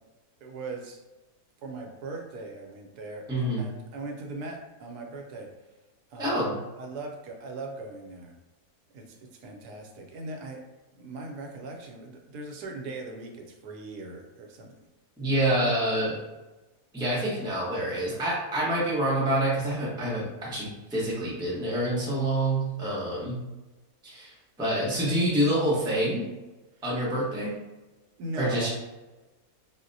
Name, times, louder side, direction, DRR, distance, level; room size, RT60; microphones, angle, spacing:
voice 1, 0.4-1.0 1.6-5.5 6.1-6.5 6.8-8.3 8.9-10.6 10.9-14.8 28.2-28.7, right 2 dB, 80° right, 1 dB, 1.1 m, -39 dB
voice 2, 3.3-3.6 6.2-6.5 15.2-16.2 16.9-23.4 24.0-26.3 26.8-27.5 28.3-28.7, right 1 dB, 5° right, -7 dB, 0.5 m, -27 dB
4.0 x 2.1 x 2.6 m, 1.1 s
omnidirectional pair, 1.7 m